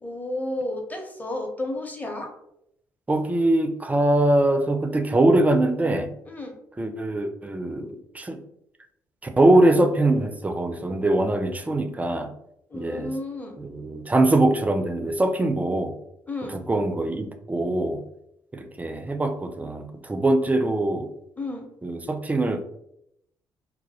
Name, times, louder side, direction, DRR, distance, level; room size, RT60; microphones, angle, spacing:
voice 1, 0.0-2.3 6.3-6.6 12.7-13.6 16.3-16.6 21.4-21.7, left 2 dB, 15° left, 2 dB, 0.7 m, -32 dB
voice 2, 3.1-6.1 6.8-8.4 9.2-12.3 12.7-13.1 13.6-15.9 16.5-18.0 18.5-21.1 21.8-22.6, right 1 dB, 15° right, 7 dB, 0.4 m, -22 dB
2.2 x 2.1 x 2.7 m, 0.77 s
hypercardioid pair, 50°, 9 cm